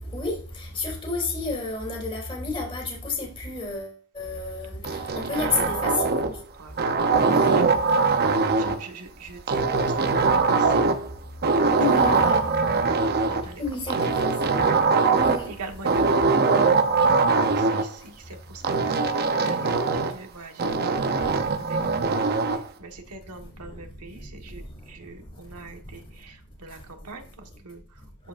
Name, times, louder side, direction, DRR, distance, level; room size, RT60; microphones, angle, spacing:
voice 1, 0.1-6.3 7.3-7.6 11.8-12.5 13.6-14.5 15.1-15.5 23.7-23.8 24.4-24.7, left 3 dB, 25° left, 3.0 m, -31 dB
sound 1, 4.8-6.4 6.8-8.8 9.5-11.1 11.4-13.4 13.9-15.5 15.8-17.9 18.6-20.2 20.6-22.6, right 4 dB, 45° right, 0.7 m, -22 dB
voice 2, 5.6-5.9 6.6-6.9 7.5-7.6 8.1-8.3 8.6-10.9 11.6-12.7 13.3-13.6 13.9-14.0 15.5-16.6 17.5-20.8 21.2-21.3 21.6-28.3, right 3 dB, 80° right, 1.4 m, -43 dB
13.0 x 4.6 x 2.5 m
head